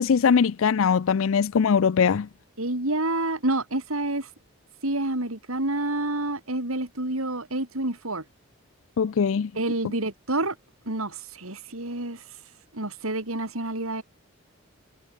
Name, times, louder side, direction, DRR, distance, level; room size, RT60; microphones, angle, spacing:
voice 1, 0.0-2.3 9.0-9.5, left 6 dB, 70° left, 0.4 m, -21 dB
voice 2, 2.6-4.3 4.8-8.2 9.5-10.5 10.9-12.2 12.7-14.0, right 2 dB, 80° right, 4.6 m, -28 dB
head